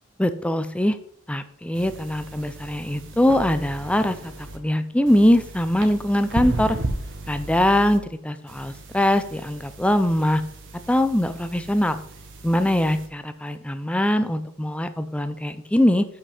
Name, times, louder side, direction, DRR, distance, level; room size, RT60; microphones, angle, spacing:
voice 1, 0.2-1.0 1.3-6.8 7.3-10.4 10.9-12.0 12.4-16.1, left 1 dB, 5° left, 10 dB, 0.5 m, -22 dB
sound 1, 1.7-4.6 5.1-8.0 8.5-13.1, right 2 dB, 60° right, 1.4 m, -35 dB
6.9 x 5.9 x 5.0 m, 0.68 s
head